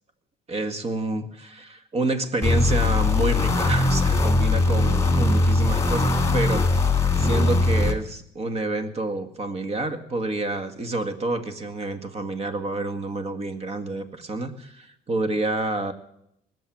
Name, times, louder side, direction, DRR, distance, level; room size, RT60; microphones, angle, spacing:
voice 1, 0.5-15.9, right 2 dB, 40° right, 10 dB, 1.9 m, -28 dB
sound 1, 2.4-7.9, left 3 dB, 15° left, 1.9 m, -20 dB
20.0 x 7.9 x 7.5 m, 0.76 s
cardioid pair, 110°, 17 cm